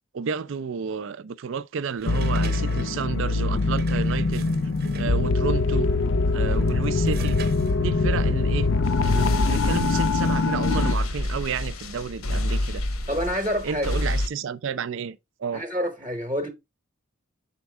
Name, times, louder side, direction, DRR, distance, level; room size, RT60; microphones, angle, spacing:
voice 1, 0.1-4.5 4.9-5.9 6.3-7.4 7.8-8.7 9.0-12.8 13.6-15.6, right 6 dB, 65° right, 0.4 m, -31 dB
sound 1, 2.0-5.6 6.3-9.3, right 4 dB, 45° right, 0.8 m, -42 dB
sound 2, 2.1-10.9, left 3 dB, 60° left, 0.4 m, -23 dB
sound 3, 8.8-14.3, left 1 dB, 80° left, 0.9 m, -28 dB
voice 2, 13.1-13.9 15.5-16.5, equal, 20° right, 0.9 m, -27 dB
7.0 x 4.5 x 3.3 m
head